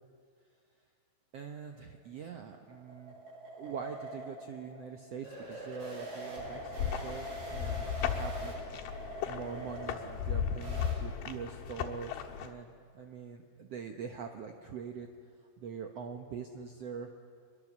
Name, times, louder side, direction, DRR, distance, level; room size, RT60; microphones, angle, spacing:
voice 1, 1.3-3.1 3.6-8.5 9.3-15.1 15.6-17.1, right 6 dB, 80° right, 4 dB, 1.4 m, -43 dB
sound 1, 2.0-10.9, right 1 dB, 35° right, 9.0 m, -44 dB
sound 2, 6.4-12.5, left 8 dB, 85° left, 3.2 m, -36 dB
24.5 x 22.5 x 7.3 m, 2.2 s
omnidirectional pair, 4.4 m